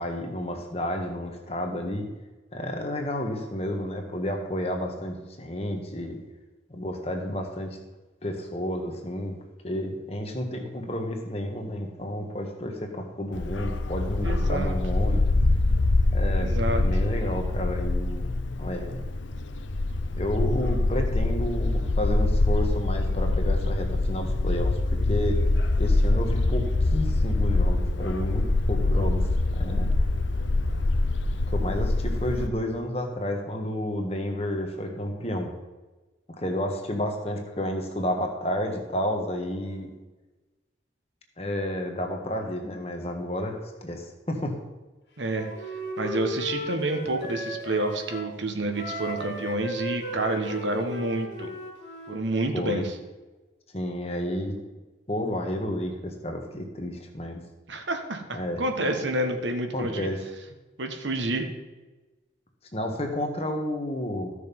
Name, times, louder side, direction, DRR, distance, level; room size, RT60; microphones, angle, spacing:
voice 1, 0.0-2.1 2.5-6.2 6.7-7.8 8.2-9.4 9.6-15.2 16.1-18.3 18.6-19.0 20.2-25.4 25.8-29.9 31.5-35.5 36.4-39.9 41.4-44.6 52.5-52.8 53.7-54.6 55.1-57.4 58.3-58.6 59.7-60.2 62.7-64.3, left 1 dB, 35° left, 3 dB, 1.5 m, -31 dB
Bark, 13.3-32.5, left 2 dB, 90° left, 0.7 m, -24 dB
voice 2, 14.2-14.8 16.4-16.8 45.2-51.5 52.1-52.9 57.7-60.1 60.8-61.5, right 2 dB, 80° right, 5 dB, 1.4 m, -29 dB
Wind instrument woodwind instrument, 45.3-48.3 48.7-52.2, equal, 65° left, 2.2 m, -36 dB
14.5 x 6.5 x 5.4 m, 1.2 s
head